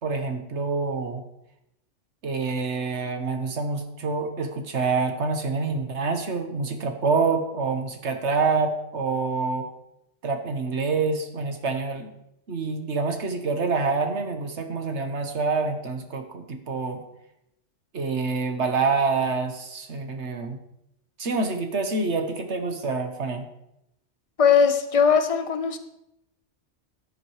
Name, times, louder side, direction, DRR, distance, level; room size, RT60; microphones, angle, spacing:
voice 1, 0.0-1.2 2.2-9.7 10.2-12.2 12.5-17.0 17.9-20.6 21.2-23.5, right 4 dB, 65° right, 6 dB, 1.5 m, -26 dB
voice 2, 24.4-25.8, left 6 dB, 30° left, 8 dB, 0.8 m, -19 dB
13.5 x 10.5 x 3.2 m, 0.82 s
omnidirectional pair, 1.3 m